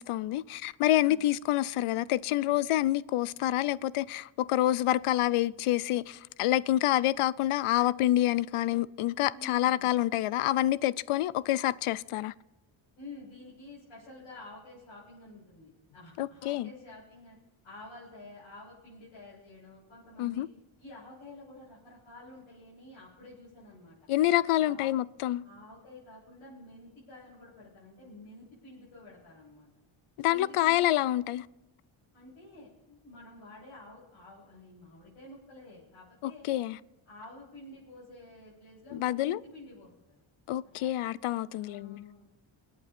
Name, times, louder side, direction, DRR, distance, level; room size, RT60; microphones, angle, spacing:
voice 1, 0.0-12.3 16.2-16.7 20.2-20.5 24.1-25.4 30.2-31.5 36.2-36.8 38.9-39.4 40.5-42.2, left 14 dB, 90° left, 0.6 m, -27 dB
voice 2, 0.9-1.2 9.3-9.9 13.0-17.4 17.6-20.4 20.8-24.0 24.6-24.8 25.4-29.7 30.2-30.8 32.1-36.5 37.1-40.2 40.8-40.9 41.6-42.2, left 2 dB, 70° left, 7.1 m, -50 dB
26.0 x 8.8 x 4.3 m
cardioid pair, 95°, 49 cm